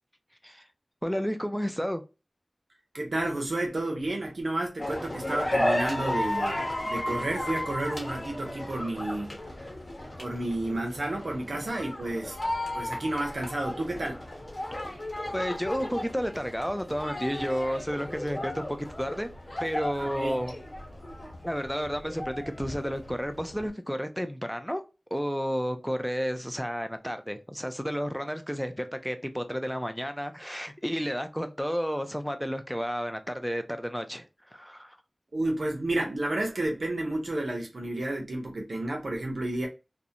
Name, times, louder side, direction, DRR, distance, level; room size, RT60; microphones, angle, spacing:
voice 1, 1.0-2.0 15.3-19.3 19.6-20.5 21.4-24.8 25.1-35.0, equal, ahead, 0.4 m, -31 dB
voice 2, 2.9-9.4 10.2-12.4 12.7-14.2 20.0-20.4 35.3-39.7, right 1 dB, 85° right, 0.6 m, -31 dB
sound 1, 4.8-23.7, left 1 dB, 55° left, 1.1 m, -34 dB
2.5 x 2.0 x 2.7 m
wide cardioid pair, 55°, 0 cm